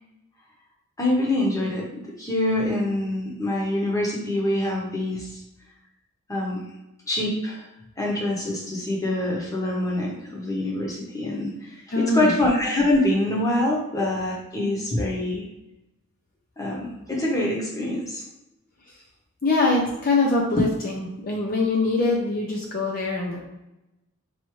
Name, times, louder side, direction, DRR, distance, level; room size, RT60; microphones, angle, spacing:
voice 1, 1.0-5.4 6.3-6.6 7.1-7.6 8.0-15.4 16.6-18.2, left 1 dB, 15° left, -3 dB, 0.9 m, -25 dB
voice 2, 11.9-12.3 19.4-23.4, left 2 dB, 40° left, -1 dB, 0.6 m, -23 dB
4.7 x 2.6 x 3.1 m, 0.95 s
head